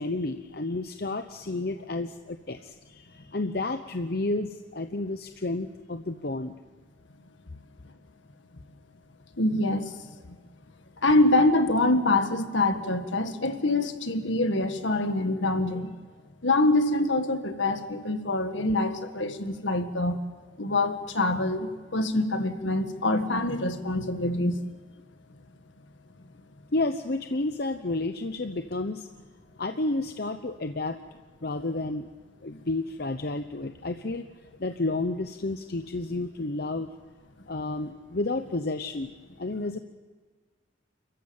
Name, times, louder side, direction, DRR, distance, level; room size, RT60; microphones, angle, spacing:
voice 1, 0.0-6.5 26.7-29.1 29.6-31.0 31.4-32.1 32.4-34.3 34.6-36.9 37.5-39.1 39.4-39.8, left 2 dB, 50° left, 7 dB, 0.8 m, -31 dB
voice 2, 9.4-9.9 11.0-15.9 16.4-20.2 20.6-24.6, left 2 dB, 70° left, 8 dB, 1.8 m, -25 dB
29.5 x 14.5 x 8.8 m, 1.4 s
head